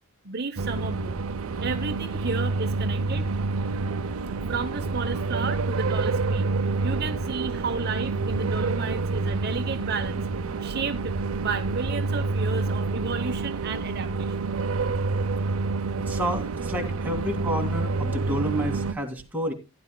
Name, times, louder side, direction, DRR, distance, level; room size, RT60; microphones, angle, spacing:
voice 1, 0.2-1.2 1.6-3.3 4.5-10.3 10.6-11.1 11.4-14.4, right 4 dB, 50° right, 0.8 m, -32 dB
sound 1, 0.6-18.9, right 3 dB, 80° right, 0.6 m, -28 dB
voice 2, 16.0-19.5, equal, 10° right, 2.1 m, -30 dB
16.0 x 10.5 x 2.2 m
head